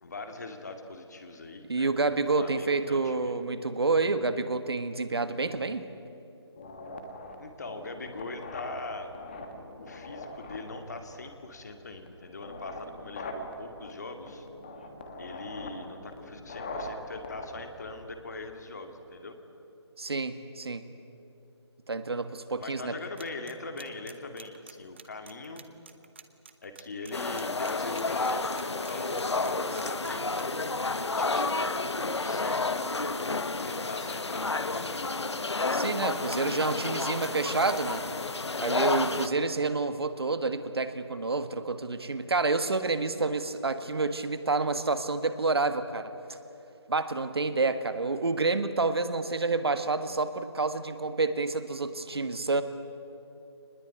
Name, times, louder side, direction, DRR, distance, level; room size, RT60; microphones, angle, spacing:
voice 1, 0.0-3.3 7.4-9.1 9.8-14.5 15.2-19.4 22.6-25.6 26.6-30.6 30.9-32.8 33.6-35.3, left 3 dB, 35° left, 6 dB, 2.3 m, -41 dB
voice 2, 1.7-5.9 20.0-20.8 21.9-22.9 35.7-38.0 38.6-46.1 46.9-52.6, right 3 dB, 60° right, 10 dB, 1.6 m, -28 dB
sound 1, 6.6-18.5, left 1 dB, 20° left, 1.6 m, -43 dB
sound 2, 23.2-30.4, right 6 dB, 25° right, 0.9 m, -48 dB
sound 3, 27.1-39.3, left 3 dB, 70° left, 1.4 m, -30 dB
25.0 x 20.5 x 9.4 m, 2.9 s
figure-of-eight pair, 170°, 15 cm